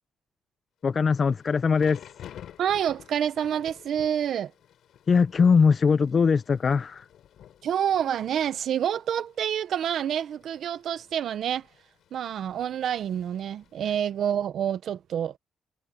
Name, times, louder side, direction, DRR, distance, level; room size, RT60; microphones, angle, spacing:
voice 1, 0.8-2.0 5.1-7.0, left 5 dB, 40° left, 0.9 m, -21 dB
Thunder / Rain, 1.0-14.1, left 10 dB, 70° left, 5.0 m, -52 dB
voice 2, 2.6-4.5 7.6-11.7 12.1-15.4, right 9 dB, 70° right, 1.3 m, -28 dB
cardioid pair, 90°, 0 cm